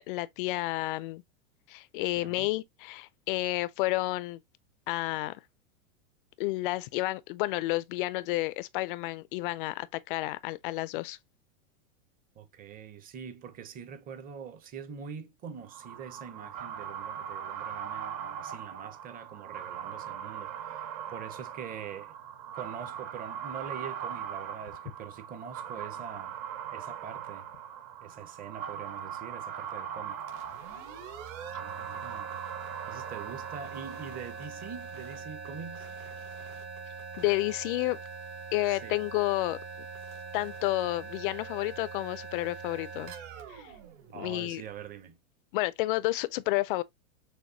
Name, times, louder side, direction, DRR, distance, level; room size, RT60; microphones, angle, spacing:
voice 1, 0.1-1.2 1.7-4.4 4.9-5.4 6.4-11.2 37.2-38.0 38.5-39.6 40.3-43.1 43.5-43.7 44.1-44.6 45.5-46.8, left 19 dB, 40° left, 0.4 m, -30 dB
voice 2, 2.2-2.5 12.3-22.1 22.5-26.4 26.7-27.5 28.0-30.2 31.6-32.4 32.9-35.9 38.7-39.0 44.1-45.2, right 7 dB, 20° right, 0.7 m, -44 dB
sound 1, 15.7-34.6, right 8 dB, 35° right, 1.0 m, -40 dB
sound 2, 30.2-44.8, right 5 dB, 55° right, 2.5 m, -43 dB
6.4 x 2.6 x 2.7 m
supercardioid pair, 135°, 41 cm